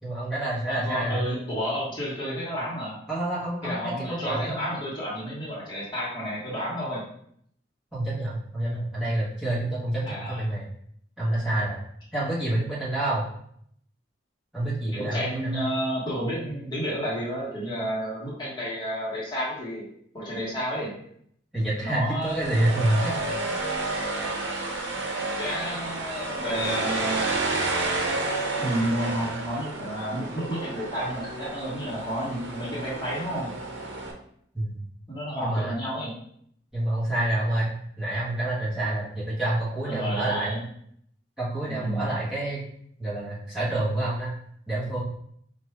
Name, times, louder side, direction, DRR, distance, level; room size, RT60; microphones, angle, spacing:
voice 1, 0.0-1.2 3.1-4.6 7.9-10.6 11.2-11.8 12.1-13.2 14.5-15.7 21.5-23.2 23.4-23.6 34.5-34.8 35.4-35.7 36.7-40.6 41.4-42.6 43.0-44.3 44.7-45.0, right 1 dB, 5° right, -10 dB, 1.2 m, -28 dB
voice 2, 0.6-3.0 3.6-7.0 10.0-10.4 14.9-19.9 20.1-20.9 21.8-22.5 25.2-27.2 28.6-33.5 35.1-36.1 39.8-40.6 41.7-42.1, equal, 25° left, -7 dB, 1.2 m, -31 dB
sound 1, 22.2-34.1, right 3 dB, 85° right, 0.7 m, -31 dB
4.6 x 2.5 x 3.2 m, 0.67 s
head